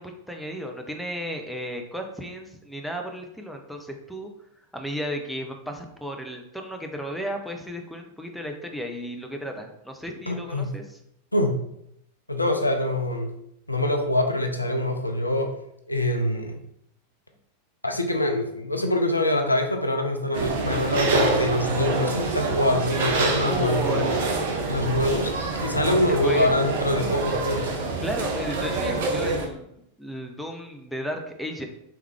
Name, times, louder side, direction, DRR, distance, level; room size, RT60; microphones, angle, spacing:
voice 1, 0.0-4.3 4.7-11.0 23.5-24.1 26.1-26.5 27.3-27.4 28.0-31.7, equal, ahead, 3 dB, 0.5 m, -34 dB
voice 2, 10.3-10.7 11.3-11.6 12.3-13.3 13.7-15.5 15.9-16.6 17.8-24.1 24.7-25.3 25.6-27.7, left 1 dB, 85° left, 4 dB, 0.4 m, -24 dB
sound 1, 20.3-29.5, right 3 dB, 55° right, 0.6 m, -26 dB
3.3 x 3.2 x 3.3 m, 0.75 s
figure-of-eight pair, 90°, 0 cm